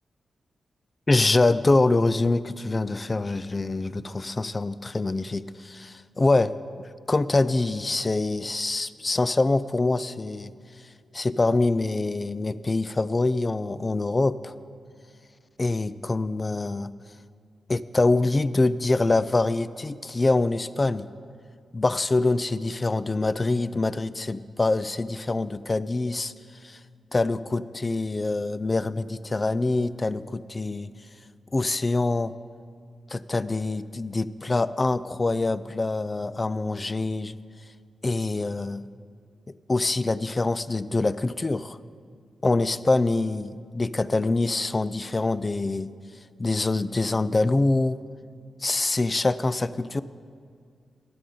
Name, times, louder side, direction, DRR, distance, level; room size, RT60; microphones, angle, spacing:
voice 1, 1.1-14.6 15.6-16.9 17.7-21.1 21.7-26.3 26.6-26.8 27.1-30.9 31.5-32.3 33.1-37.4 38.0-38.8 39.5-41.8 42.4-45.9 46.4-48.0 48.6-50.0, left 2 dB, 25° left, 16 dB, 0.3 m, -25 dB
20.0 x 9.3 x 3.8 m, 2.2 s
wide cardioid pair, 140°, 0 cm